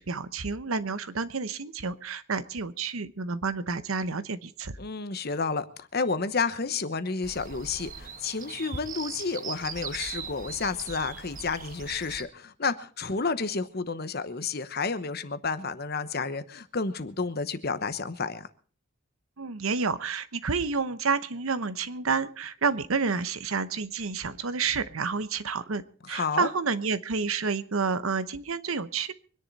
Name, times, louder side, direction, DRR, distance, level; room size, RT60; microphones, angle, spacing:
voice 1, 0.0-4.8 19.4-29.1, right 4 dB, 90° right, 0.9 m, -29 dB
voice 2, 4.8-18.5 26.0-26.5, left 4 dB, 50° left, 1.0 m, -31 dB
sound 1, 7.2-12.2, right 5 dB, 40° right, 1.2 m, -40 dB
24.5 x 10.5 x 4.1 m
head